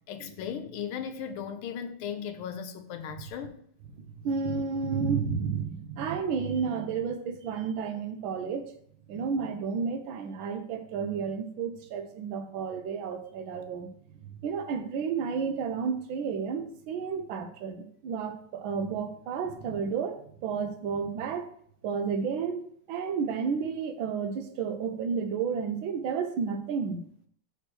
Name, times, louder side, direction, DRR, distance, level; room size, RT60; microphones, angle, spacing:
voice 1, 0.1-3.6, left 8 dB, 90° left, 1.6 m, -37 dB
voice 2, 4.2-8.7 9.1-13.9 14.4-21.5 21.8-27.0, right 6 dB, 70° right, 1.5 m, -31 dB
6.6 x 3.1 x 5.9 m
omnidirectional pair, 2.3 m